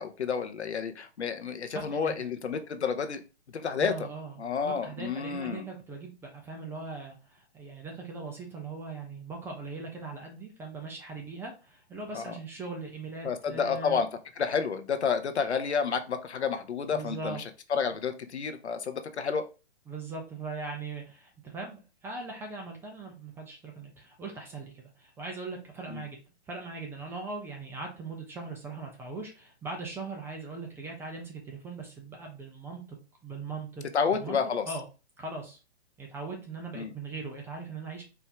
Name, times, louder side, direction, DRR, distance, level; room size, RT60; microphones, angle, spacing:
voice 1, 0.0-3.2 3.5-4.1 4.4-5.7 12.1-12.4 13.2-14.1 14.4-17.4 17.7-19.4 25.9-26.0 33.9-34.7 36.7-36.9, left 6 dB, 80° left, 8 dB, 0.8 m, -30 dB
voice 2, 1.7-2.1 3.8-4.3 4.6-14.0 16.9-17.4 19.9-26.2 26.5-32.8 33.2-33.8 34.1-34.4 34.6-34.8 35.2-35.6 36.0-38.0, right 3 dB, 5° right, 1 dB, 0.5 m, -40 dB
4.5 x 2.7 x 3.4 m, 0.31 s
hypercardioid pair, 130°, 33 cm